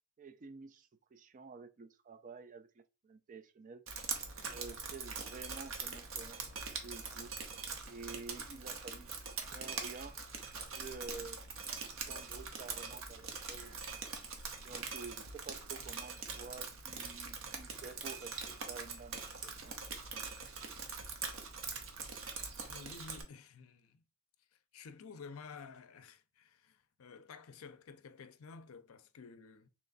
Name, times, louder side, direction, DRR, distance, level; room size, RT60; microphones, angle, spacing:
voice 1, 0.2-3.8 4.5-7.3 7.9-9.1 9.5-10.2 10.7-11.4 11.9-14.0 14.6-19.8 20.1-20.2, right 4 dB, 35° right, 0.3 m, -50 dB
Drip, 3.9-23.2, right 5 dB, 60° right, 0.8 m, -43 dB
voice 2, 22.7-24.0 24.5-29.7, left 5 dB, 70° left, 0.5 m, -52 dB
3.3 x 2.9 x 3.9 m
head